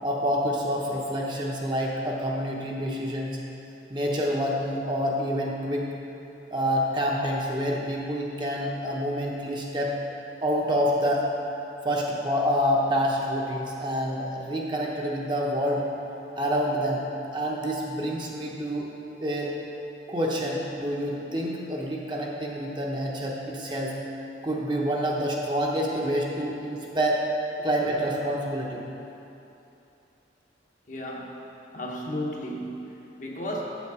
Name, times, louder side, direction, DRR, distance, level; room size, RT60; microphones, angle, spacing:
voice 1, 0.0-3.4 3.9-5.9 6.5-9.9 10.4-11.3 11.8-15.9 16.3-17.0 17.3-18.9 19.2-19.5 20.1-23.9 24.4-27.2 27.6-28.8, equal, 25° right, -2 dB, 0.8 m, -27 dB
voice 2, 30.9-31.4 31.7-33.6, equal, 40° left, -2 dB, 0.9 m, -34 dB
7.6 x 7.2 x 4.8 m, 2.9 s
head